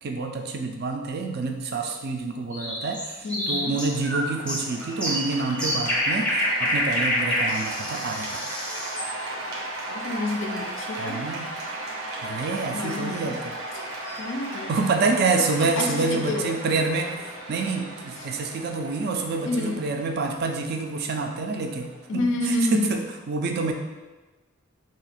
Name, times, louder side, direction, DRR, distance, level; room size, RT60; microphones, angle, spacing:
voice 1, 0.0-8.4 11.0-11.5 12.2-13.6 14.7-23.7, right 3 dB, 50° right, 4 dB, 0.4 m, -27 dB
sound 1, 2.5-9.1, left 1 dB, 5° left, 0.6 m, -27 dB
voice 2, 3.2-3.7 9.9-11.2 12.7-13.3 14.2-14.7 15.8-16.6 19.4-19.8 22.1-22.9, left 2 dB, 60° left, 3 dB, 0.4 m, -28 dB
Cheering / Applause, 3.4-22.7, right 2 dB, 80° right, 0.7 m, -36 dB
2.8 x 2.4 x 4.2 m, 1.2 s
head